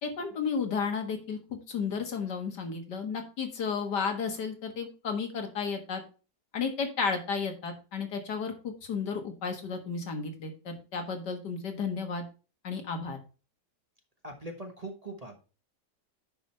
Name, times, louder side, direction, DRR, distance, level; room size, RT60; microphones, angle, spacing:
voice 1, 0.0-6.0 6.5-12.3 12.6-13.2, left 5 dB, 75° left, 5 dB, 2.2 m, -33 dB
voice 2, 14.2-15.4, right 2 dB, 25° right, 2 dB, 1.1 m, -41 dB
10.0 x 5.3 x 4.3 m, 0.34 s
omnidirectional pair, 1.8 m